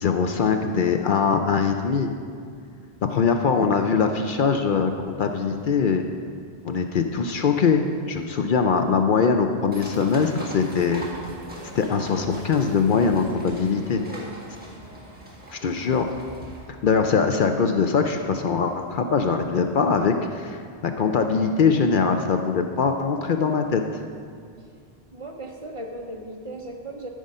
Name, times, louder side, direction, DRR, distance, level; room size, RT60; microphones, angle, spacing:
voice 1, 0.0-2.1 3.1-6.0 6.6-11.1 11.7-14.0 15.5-16.1 16.8-23.8, left 5 dB, 60° left, 5 dB, 0.7 m, -22 dB
sound 1, 9.7-16.6, right 1 dB, 10° right, 1.7 m, -41 dB
voice 2, 13.9-14.3 25.1-27.1, right 1 dB, 35° right, 2 dB, 0.7 m, -37 dB
13.0 x 5.0 x 5.4 m, 2.3 s
omnidirectional pair, 1.1 m